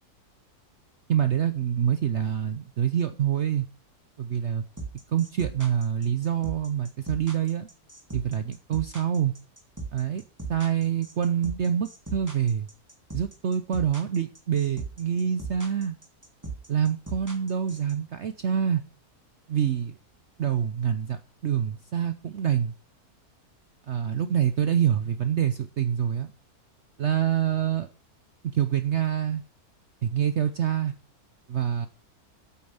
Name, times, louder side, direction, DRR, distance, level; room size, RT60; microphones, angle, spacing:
voice 1, 1.1-3.7 4.2-4.6 5.1-7.7 8.1-9.3 9.9-10.2 10.5-12.7 13.1-16.0 16.7-18.8 19.5-19.9 20.4-22.7 23.9-26.3 27.0-27.9 28.4-29.4 30.0-30.9 31.5-31.9, right 9 dB, 55° right, 11 dB, 0.9 m, -26 dB
sound 1, 4.8-17.9, right 4 dB, 10° right, 2.5 m, -37 dB
8.9 x 8.7 x 7.8 m, 0.40 s
omnidirectional pair, 1.6 m